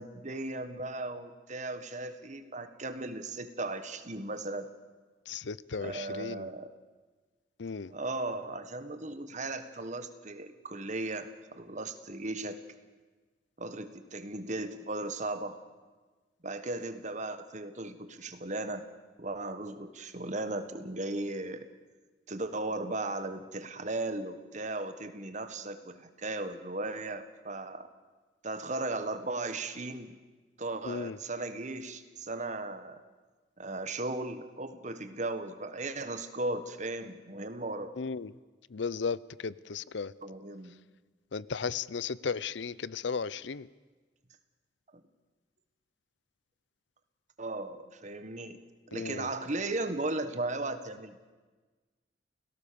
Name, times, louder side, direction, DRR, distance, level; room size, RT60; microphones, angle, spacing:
voice 1, 0.0-4.7 5.8-6.7 7.9-12.6 13.6-15.6 16.4-18.8 19.2-21.6 22.3-27.9 28.4-30.1 30.6-33.0 33.6-37.9 40.2-40.8 44.9-45.0 47.4-48.6 48.9-51.2, right 2 dB, 40° right, 9 dB, 1.6 m, -36 dB
voice 2, 5.3-6.5 7.6-7.9 30.8-31.2 38.0-38.3 38.7-40.1 41.3-43.7 48.9-49.3, left 5 dB, 85° left, 20 dB, 0.6 m, -35 dB
29.5 x 17.5 x 7.0 m, 1.3 s
head